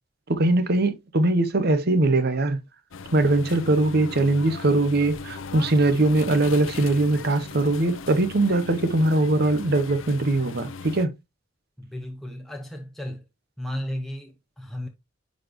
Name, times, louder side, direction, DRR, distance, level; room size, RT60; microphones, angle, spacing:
voice 1, 0.3-2.6 3.1-11.1, right 2 dB, 50° right, 0.8 m, -21 dB
sound 1, 2.9-11.1, left 4 dB, 70° left, 0.6 m, -38 dB
voice 2, 11.8-13.2 13.6-14.9, left 1 dB, ahead, 0.7 m, -34 dB
10.0 x 4.1 x 3.0 m
head